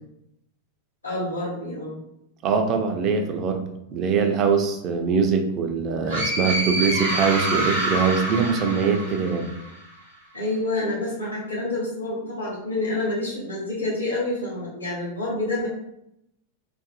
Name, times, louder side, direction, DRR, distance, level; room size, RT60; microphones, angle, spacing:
voice 1, 1.0-2.0 10.3-15.7, left 2 dB, 80° left, -7 dB, 0.8 m, -28 dB
voice 2, 2.4-3.6 3.9-9.5, right 5 dB, 35° right, 5 dB, 0.4 m, -22 dB
sound 1, 6.1-9.7, right 1 dB, 75° right, 0.9 m, -26 dB
2.5 x 2.5 x 2.4 m, 0.82 s
figure-of-eight pair, 90°, 0 cm